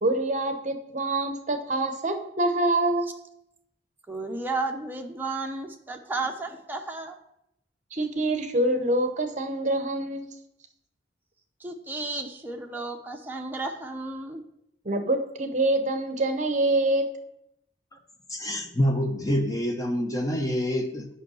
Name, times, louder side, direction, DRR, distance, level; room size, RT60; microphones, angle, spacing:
voice 1, 0.0-3.0 7.9-10.3 14.8-17.0, right 2 dB, 40° right, 6 dB, 0.8 m, -25 dB
voice 2, 4.1-7.2 11.6-14.5, right 3 dB, 10° right, 2 dB, 0.8 m, -33 dB
voice 3, 18.3-21.1, equal, 20° left, 4 dB, 0.8 m, -26 dB
7.9 x 5.5 x 6.3 m, 0.80 s
head